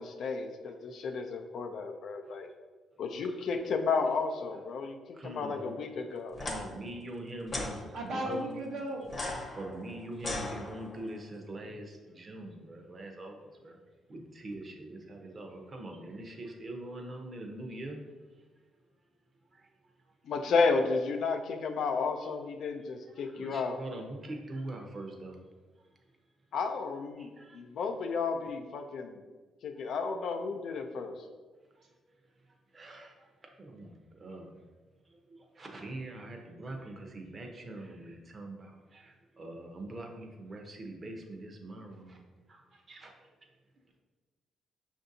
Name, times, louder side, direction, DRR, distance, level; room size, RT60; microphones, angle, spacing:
voice 1, 0.0-2.5 3.0-6.4 20.3-23.8 26.5-29.2 29.6-31.2, left 4 dB, 65° left, 5 dB, 0.4 m, -32 dB
voice 2, 5.1-6.1 6.4-8.5 9.5-13.8 14.1-18.0 19.5-19.7 22.8-25.4 27.2-27.6 32.7-34.6 35.1-42.2 42.5-43.3, right 1 dB, 35° right, 2 dB, 0.7 m, -43 dB
sound 1, 6.3-6.6 7.5-7.7 9.1-11.1, left 2 dB, 30° left, 0.8 m, -37 dB
voice 3, 7.9-9.1 42.7-42.8, right 1 dB, 70° right, 0 dB, 0.8 m, -35 dB
5.6 x 2.6 x 2.6 m, 1.3 s
cardioid pair, 90°, 0 cm